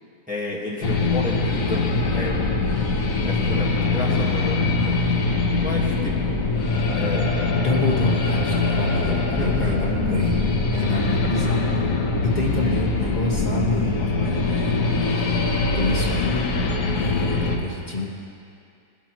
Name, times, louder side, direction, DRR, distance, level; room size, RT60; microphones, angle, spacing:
voice 1, 0.3-2.5 3.0-5.0 5.6-6.4 6.9-7.3 9.3-9.8 12.6-12.8, left 2 dB, 5° right, -4 dB, 1.3 m, -32 dB
sound 1, 0.8-17.6, left 3 dB, 65° left, 1.5 m, -22 dB
voice 2, 7.5-10.3 10.7-11.8 12.2-14.8 15.2-15.3 15.7-16.4 17.0-18.1, left 2 dB, 30° left, -3 dB, 1.6 m, -27 dB
22.0 x 12.5 x 3.1 m, 2.5 s
omnidirectional pair, 1.6 m